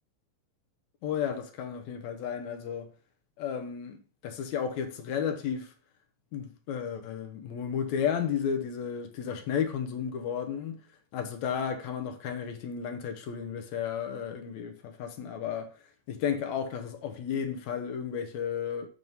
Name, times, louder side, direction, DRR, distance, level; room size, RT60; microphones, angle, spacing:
voice 1, 1.0-2.9 3.4-5.7 6.3-10.8 11.1-15.7 16.1-18.9, left 8 dB, 75° left, 2.0 m, -33 dB
7.7 x 3.6 x 5.3 m
omnidirectional pair, 3.6 m